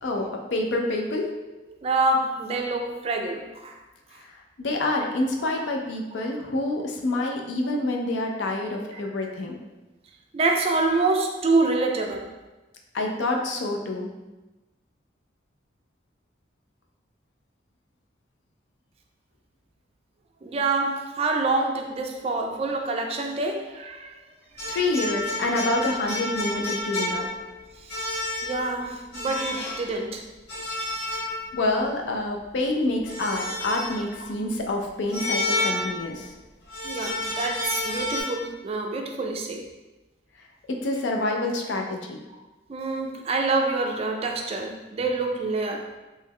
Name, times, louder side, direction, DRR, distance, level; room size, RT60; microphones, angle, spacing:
voice 1, 0.0-1.3 4.2-4.3 4.6-9.6 12.9-14.1 24.7-27.4 31.2-31.3 31.5-36.3 40.7-42.2, left 2 dB, 75° left, 1 dB, 0.5 m, -27 dB
voice 2, 1.8-3.8 5.4-5.5 8.9-9.0 10.3-12.3 20.4-24.2 24.5-24.8 27.8-28.2 28.4-30.2 34.2-34.4 36.8-39.7 42.7-46.0, right 3 dB, 30° right, 3 dB, 0.3 m, -26 dB
sound 1, 24.6-27.5 27.9-28.7 29.1-29.8 30.5-31.7 33.1-34.1 35.1-36.3 36.7-38.2, left 1 dB, 55° left, 0.9 m, -30 dB
3.1 x 2.2 x 3.4 m, 1.1 s
head